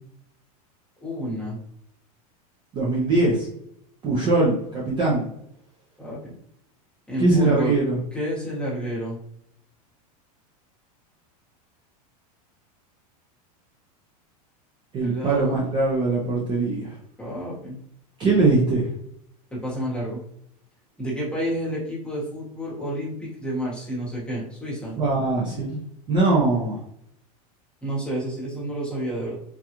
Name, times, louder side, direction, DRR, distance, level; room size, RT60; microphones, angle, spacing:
voice 1, 1.0-1.6 6.0-6.3 7.1-7.7 8.1-9.2 15.0-15.6 17.2-17.8 19.5-20.2 21.0-25.0 27.8-29.4, equal, 5° left, -6 dB, 1.1 m, -30 dB
voice 2, 2.7-3.5 4.0-5.3 7.2-7.9 14.9-16.9 18.2-18.9 25.0-25.8 26.1-26.8, right 2 dB, 25° right, -4 dB, 0.6 m, -21 dB
3.6 x 2.3 x 2.9 m, 0.72 s
supercardioid pair, 160°, 20 cm